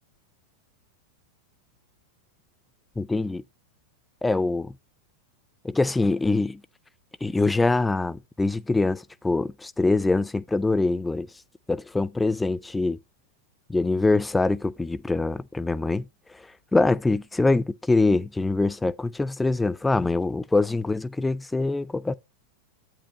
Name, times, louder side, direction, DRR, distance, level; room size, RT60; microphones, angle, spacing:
voice 1, 3.0-3.4 4.2-4.7 5.6-6.6 7.2-11.3 11.7-13.0 13.7-16.1 16.3-22.1, left 3 dB, 10° left, 0.3 m, -24 dB
8.5 x 7.5 x 2.8 m
figure-of-eight pair, 90°, 0 cm